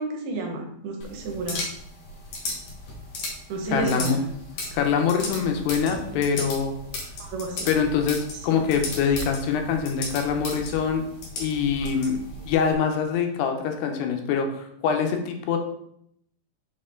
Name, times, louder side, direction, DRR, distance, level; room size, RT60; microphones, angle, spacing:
voice 1, 0.0-1.6 3.5-4.2 7.2-7.7 8.5-8.6, right 3 dB, 75° right, 2 dB, 2.8 m, -31 dB
sound 1, 1.0-12.7, left 2 dB, 55° left, 2.1 m, -36 dB
voice 2, 3.7-4.2 4.7-6.8 7.7-11.0 11.4-12.2 12.5-15.6, left 6 dB, 90° left, 4 dB, 2.9 m, -24 dB
6.5 x 4.4 x 3.7 m, 0.72 s
omnidirectional pair, 4.6 m